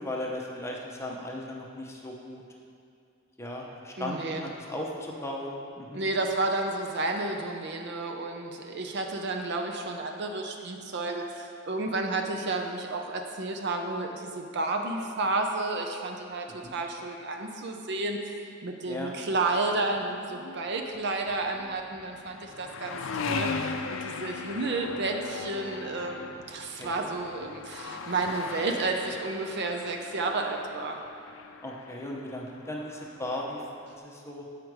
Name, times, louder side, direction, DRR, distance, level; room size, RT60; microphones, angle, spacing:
voice 1, 0.0-2.4 3.4-6.0 16.6-16.7 18.9-19.1 26.6-27.0 31.6-33.6 34.0-34.4, left 1 dB, 15° left, -1 dB, 0.7 m, -37 dB
voice 2, 4.0-4.4 5.9-23.0 23.2-31.0, right 2 dB, 55° right, 3 dB, 0.6 m, -31 dB
sound 1, 19.6-34.0, left 5 dB, 70° left, 0.4 m, -39 dB
8.0 x 5.0 x 4.6 m, 2.5 s
head